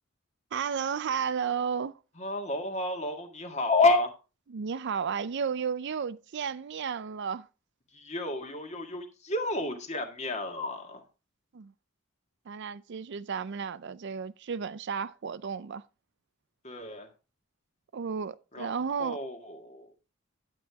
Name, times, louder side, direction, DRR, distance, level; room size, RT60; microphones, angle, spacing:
voice 1, 0.5-2.0 4.5-7.5 11.5-11.7 12.5-15.8 17.9-19.2, right 6 dB, 60° right, 0.5 m, -33 dB
voice 2, 2.2-4.1 7.9-11.0 16.6-17.1 18.5-18.7 19.0-19.9, left 2 dB, 35° left, 1.9 m, -30 dB
10.0 x 8.7 x 3.5 m
head